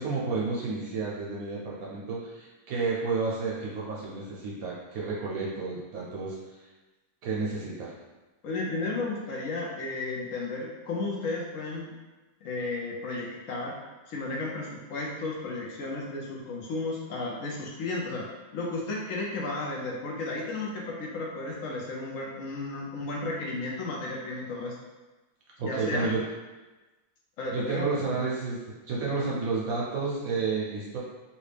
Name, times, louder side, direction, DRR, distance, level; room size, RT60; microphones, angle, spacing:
voice 1, 0.0-6.7 7.2-7.9 25.6-26.2 27.5-28.6 28.9-31.0, right 4 dB, 70° right, -5 dB, 0.9 m, -31 dB
voice 2, 8.4-11.9 12.4-13.8 14.1-18.3 18.5-24.7 25.6-26.1 27.4-28.2, left 2 dB, 70° left, -2 dB, 0.8 m, -33 dB
3.0 x 2.8 x 3.2 m, 1.2 s
omnidirectional pair, 1.8 m